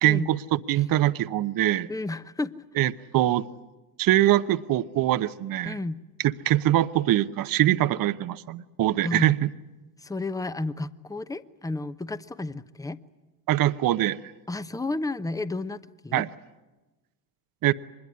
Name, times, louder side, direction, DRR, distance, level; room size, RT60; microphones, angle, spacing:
voice 1, 0.0-1.9 2.8-3.4 4.0-5.8 6.4-9.5 13.5-14.2 16.1-16.3 17.6-17.7, right 14 dB, 45° right, 14 dB, 0.9 m, -23 dB
voice 2, 1.9-2.7 5.6-6.0 9.0-9.3 10.0-13.0 14.5-16.3, left 2 dB, 5° left, 14 dB, 0.9 m, -32 dB
24.0 x 21.0 x 9.7 m, 1.1 s
hypercardioid pair, 80°, 46 cm